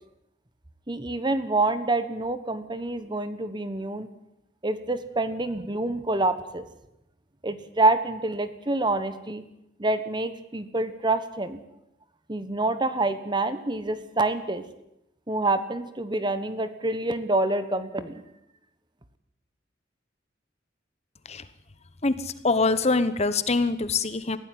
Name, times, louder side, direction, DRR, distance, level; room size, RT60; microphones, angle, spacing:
voice 1, 0.9-4.1 4.6-6.6 7.4-9.4 9.8-11.6 12.3-14.6 15.3-18.2, right 2 dB, 25° right, 12 dB, 1.3 m, -27 dB
voice 2, 22.4-24.4, left 3 dB, 35° left, 13 dB, 1.1 m, -23 dB
21.0 x 16.0 x 9.5 m, 0.84 s
head